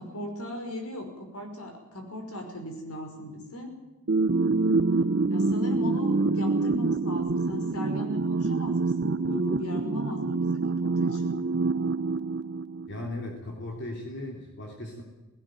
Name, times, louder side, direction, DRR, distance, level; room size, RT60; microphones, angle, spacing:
voice 1, 0.0-3.7 5.3-11.3, left 1 dB, 75° left, 5 dB, 5.5 m, -37 dB
sound 1, 4.1-13.1, right 3 dB, 50° right, 0.6 m, -26 dB
voice 2, 12.9-15.0, left 1 dB, 55° left, 0 dB, 3.2 m, -37 dB
18.0 x 17.5 x 9.3 m, 1.1 s
head